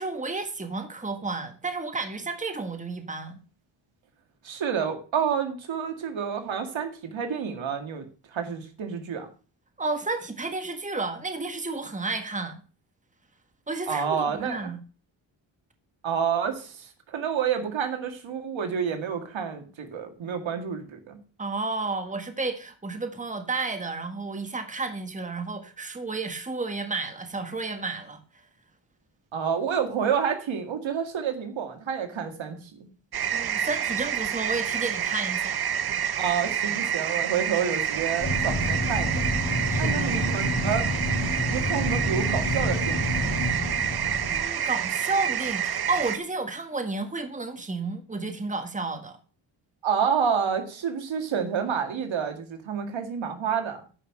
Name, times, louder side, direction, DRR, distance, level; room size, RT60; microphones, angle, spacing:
voice 1, 0.0-3.3 9.8-12.6 13.7-14.8 21.4-28.2 33.3-35.6 39.7-40.2 44.3-49.2, right 3 dB, 15° right, 1.6 m, -32 dB
voice 2, 4.4-9.3 13.9-14.7 16.0-21.2 29.3-32.9 36.2-39.2 39.8-40.9 41.5-43.3 49.8-53.8, right 7 dB, 75° right, 2.1 m, -29 dB
sound 1, 33.1-46.2, right 9 dB, 55° right, 0.8 m, -28 dB
sound 2, 38.2-44.5, left 1 dB, 45° left, 3.9 m, -28 dB
9.9 x 5.6 x 6.5 m
cardioid pair, 95°, 47 cm